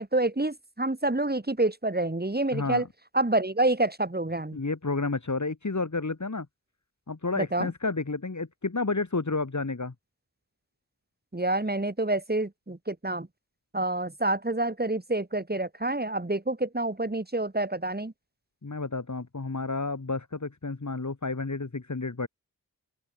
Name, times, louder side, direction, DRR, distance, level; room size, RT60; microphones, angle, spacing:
voice 1, 0.0-2.8 3.1-4.6 7.4-7.7 11.3-13.3 13.7-18.1, right 2 dB, 25° right, 5.0 m, -27 dB
voice 2, 2.5-2.8 4.5-6.5 7.1-9.9 18.6-22.3, left 3 dB, 50° left, 6.6 m, -31 dB
open air
wide cardioid pair, 65°, 37 cm